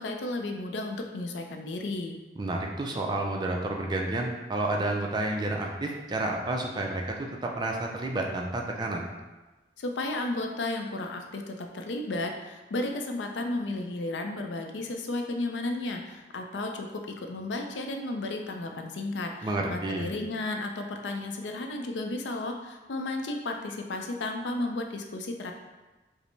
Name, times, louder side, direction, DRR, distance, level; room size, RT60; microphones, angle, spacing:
voice 1, 0.0-2.2 9.8-16.9 17.2-25.5, left 2 dB, 85° left, 4 dB, 0.4 m, -33 dB
voice 2, 2.4-9.1 19.4-20.1, right 2 dB, 25° right, 1 dB, 0.4 m, -30 dB
5.0 x 2.0 x 3.2 m, 1.2 s
head